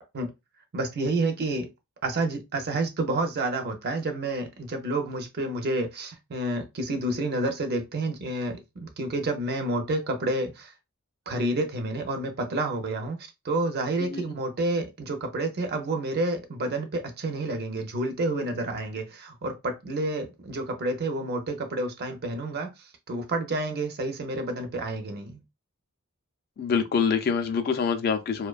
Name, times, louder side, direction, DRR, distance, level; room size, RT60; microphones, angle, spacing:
voice 1, 0.7-1.7 2.0-10.7 11.3-25.4, right 2 dB, 50° right, 0.5 m, -29 dB
voice 2, 26.6-28.5, left 6 dB, 45° left, 0.3 m, -25 dB
2.5 x 2.2 x 2.3 m
head